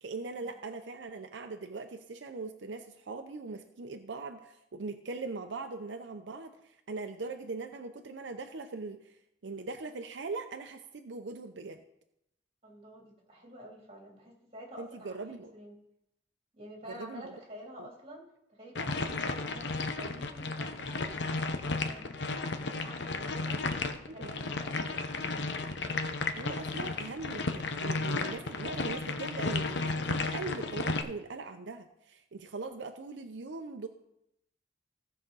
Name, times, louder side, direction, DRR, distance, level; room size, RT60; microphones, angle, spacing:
voice 1, 0.0-9.1 9.4-11.8 14.8-15.5 16.9-17.3 24.1-24.4 26.4-33.9, right 3 dB, 80° right, 6 dB, 0.6 m, -41 dB
voice 2, 12.6-15.8 16.5-25.9, equal, 35° right, -2 dB, 3.1 m, -49 dB
sound 1, 18.7-31.0, left 3 dB, 70° left, 0.8 m, -33 dB
16.0 x 5.7 x 4.0 m, 0.81 s
head